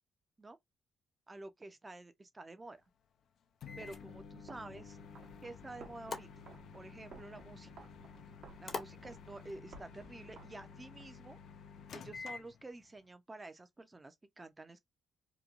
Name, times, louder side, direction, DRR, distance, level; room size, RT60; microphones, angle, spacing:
voice 1, 1.3-2.8 3.8-5.0 5.4-6.3 6.7-7.7 8.6-11.4 11.9-14.8, right 2 dB, 20° right, 0.6 m, -50 dB
Microwave oven, 3.6-13.0, left 6 dB, 65° left, 0.5 m, -52 dB
sound 1, 3.7-9.6, left 4 dB, 40° left, 0.9 m, -50 dB
sound 2, 3.7-11.1, right 4 dB, 70° right, 1.0 m, -57 dB
2.9 x 2.2 x 2.5 m
cardioid pair, 90°, 0 cm